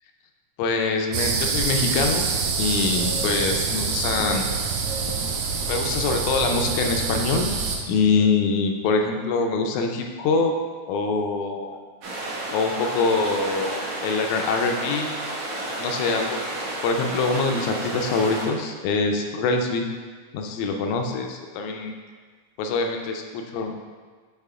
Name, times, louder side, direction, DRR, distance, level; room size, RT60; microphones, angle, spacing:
voice 1, 0.6-2.3 2.6-4.5 5.7-7.5 7.9-10.5 10.9-11.8 12.5-15.3 15.6-16.6 16.8-19.9 20.3-21.9 22.6-23.1 23.5-23.7, left 4 dB, 80° left, 3 dB, 1.9 m, -24 dB
sound 1, 1.1-7.8, right 5 dB, 90° right, 1.6 m, -26 dB
sound 2, 12.0-18.5, right 1 dB, 70° right, 2.2 m, -31 dB
6.7 x 4.1 x 3.6 m, 1.5 s
omnidirectional pair, 3.8 m